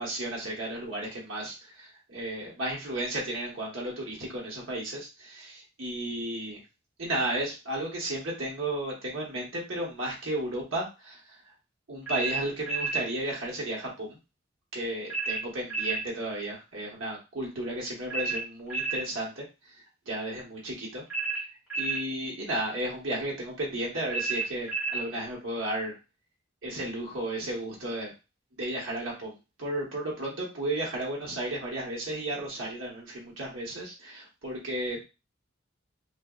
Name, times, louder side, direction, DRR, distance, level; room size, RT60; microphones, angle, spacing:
voice 1, 0.0-6.6 7.0-11.4 11.9-14.2 14.7-19.4 20.1-21.0 21.8-26.0 26.6-28.1 28.6-35.0, right 1 dB, 90° right, -3 dB, 1.1 m, -33 dB
sound 1, 12.1-13.1 15.1-16.1 18.1-19.1 21.1-22.1 24.1-25.1, right 4 dB, 10° right, 1.2 m, -31 dB
2.8 x 2.3 x 2.3 m, 0.27 s
head